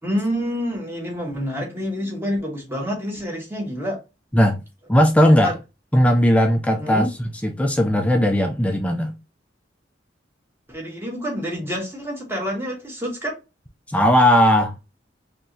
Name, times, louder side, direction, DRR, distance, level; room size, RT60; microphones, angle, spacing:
voice 1, 0.0-4.0 5.4-5.5 6.8-7.1 10.7-13.3, equal, 10° right, 1.2 m, -27 dB
voice 2, 4.9-5.5 5.9-7.1 7.4-9.1 13.9-14.7, equal, 5° left, 0.4 m, -17 dB
3.9 x 2.9 x 2.6 m
head